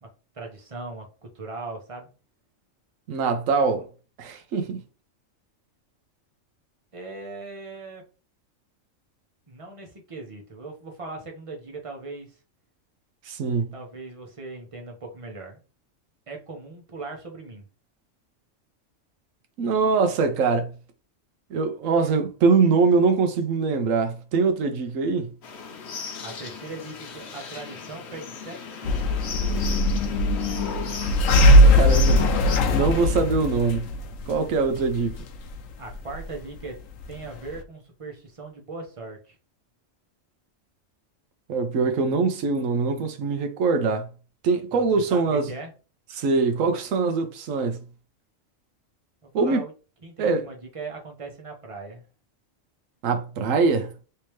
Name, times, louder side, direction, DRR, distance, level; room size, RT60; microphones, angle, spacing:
voice 1, 0.3-2.1 6.9-8.0 9.5-12.4 13.7-15.6 16.3-17.7 26.2-29.2 35.8-36.8 37.1-39.4 44.7-45.7 49.2-49.7 50.0-52.0, right 3 dB, 30° right, 0.8 m, -39 dB
voice 2, 3.1-3.9 4.2-4.8 13.3-13.7 19.6-20.7 21.5-25.3 31.4-33.9 34.3-35.1 41.5-44.1 44.4-45.5 46.1-47.8 49.3-49.6 50.2-50.5 53.0-53.9, right 4 dB, 80° right, 1.1 m, -23 dB
sound 1, 25.4-32.6, left 5 dB, 60° left, 1.0 m, -36 dB
sound 2, 28.8-37.6, left 1 dB, 85° left, 1.0 m, -20 dB
3.4 x 2.8 x 3.0 m
omnidirectional pair, 1.4 m